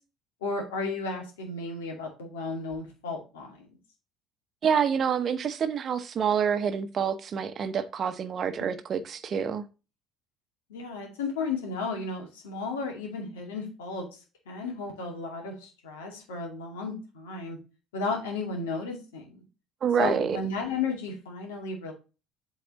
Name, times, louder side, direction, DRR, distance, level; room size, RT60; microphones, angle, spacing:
voice 1, 0.4-3.7 10.7-14.2 14.5-17.6 17.9-19.4 20.0-21.9, left 4 dB, 75° left, 2.3 m, -34 dB
voice 2, 4.6-9.6 19.8-20.4, right 7 dB, 45° right, 0.9 m, -27 dB
7.9 x 4.1 x 4.0 m
hypercardioid pair, 60°, 0 cm